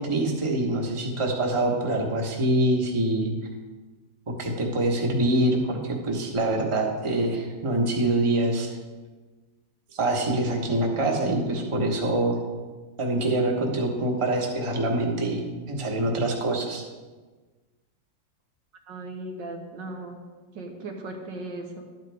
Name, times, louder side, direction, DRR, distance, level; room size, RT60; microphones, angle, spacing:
voice 1, 0.0-3.3 4.3-8.7 9.9-12.4 13.0-15.4 15.7-16.8, right 1 dB, 20° right, 0 dB, 1.1 m, -25 dB
voice 2, 18.9-20.2 20.5-21.8, right 2 dB, 75° right, 2 dB, 1.8 m, -37 dB
12.0 x 9.0 x 3.5 m, 1.3 s
omnidirectional pair, 2.0 m